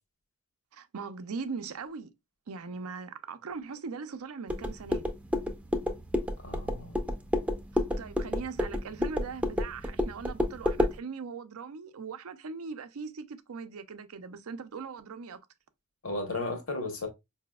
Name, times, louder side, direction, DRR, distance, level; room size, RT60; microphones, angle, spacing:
voice 1, 0.7-2.1 2.5-5.1 7.7-15.4, right 5 dB, 80° right, 0.5 m, -40 dB
sound 1, 4.5-11.0, left 1 dB, 5° right, 0.5 m, -30 dB
voice 2, 6.4-7.0 16.0-17.1, left 2 dB, 70° left, 1.3 m, -34 dB
4.8 x 2.7 x 2.2 m
head